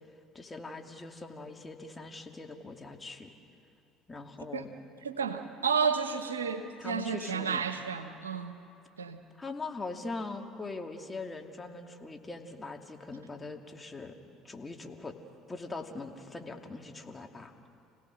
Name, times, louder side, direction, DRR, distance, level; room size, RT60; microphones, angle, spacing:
voice 1, 0.3-3.3 4.1-4.7 6.8-7.6 9.3-14.2 14.4-15.2 15.5-17.5, left 3 dB, 20° left, 4 dB, 2.5 m, -41 dB
voice 2, 5.0-8.6 9.0-9.2, right 6 dB, 85° right, 9 dB, 1.1 m, -31 dB
29.5 x 17.5 x 6.5 m, 2.6 s
figure-of-eight pair, 60°, 0 cm